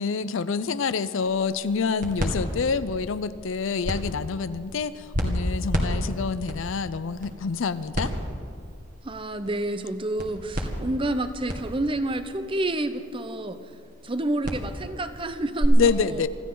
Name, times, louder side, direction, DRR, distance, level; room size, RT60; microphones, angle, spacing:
voice 1, 0.0-8.1 15.8-16.3, left 5 dB, 65° left, 14 dB, 0.5 m, -27 dB
sound 1, 1.2-15.7, equal, 40° right, 1.9 m, -33 dB
voice 2, 9.0-13.6 14.0-16.2, right 1 dB, 25° right, 10 dB, 0.7 m, -29 dB
25.0 x 14.5 x 3.9 m, 2.2 s
head